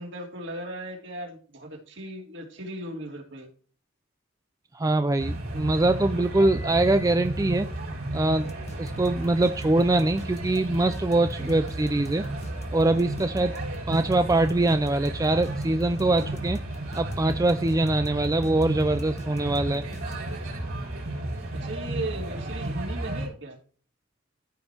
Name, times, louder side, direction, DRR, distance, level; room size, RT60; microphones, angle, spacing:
voice 1, 0.0-3.5 21.6-23.6, right 1 dB, 60° right, 0 dB, 2.8 m, -37 dB
voice 2, 4.7-7.7 8.1-12.2 12.7-13.5 13.9-16.6 16.9-19.8, right 2 dB, 15° right, 9 dB, 0.4 m, -23 dB
sound 1, 5.2-23.3, right 1 dB, 80° right, 4.8 m, -33 dB
sound 2, 8.3-20.5, left 1 dB, 30° left, 1.1 m, -48 dB
15.0 x 5.3 x 2.9 m, 0.42 s
head